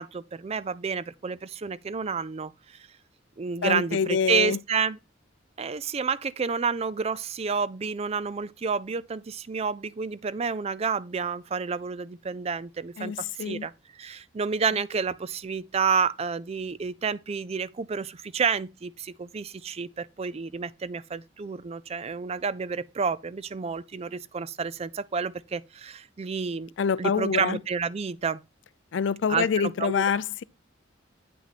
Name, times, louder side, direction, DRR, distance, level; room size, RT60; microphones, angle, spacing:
voice 1, 0.0-2.8 3.4-5.0 5.6-13.1 13.4-26.7 27.0-28.4 29.3-30.0, right 5 dB, 30° right, 0.4 m, -30 dB
voice 2, 3.6-4.6 13.0-13.7 26.8-27.6 28.9-30.4, left 6 dB, 65° left, 0.4 m, -26 dB
8.7 x 6.0 x 4.1 m
head